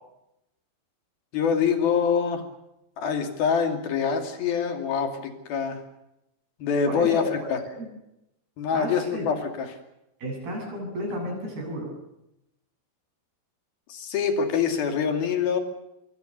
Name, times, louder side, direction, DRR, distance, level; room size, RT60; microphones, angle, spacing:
voice 1, 1.3-2.4 3.0-5.8 6.6-7.6 8.6-9.8 13.9-15.6, left 6 dB, 75° left, 5 dB, 4.3 m, -25 dB
voice 2, 6.9-7.9 8.7-9.3 10.2-11.9, equal, 90° right, 1 dB, 10.0 m, -33 dB
25.5 x 22.5 x 6.7 m, 0.86 s
omnidirectional pair, 4.4 m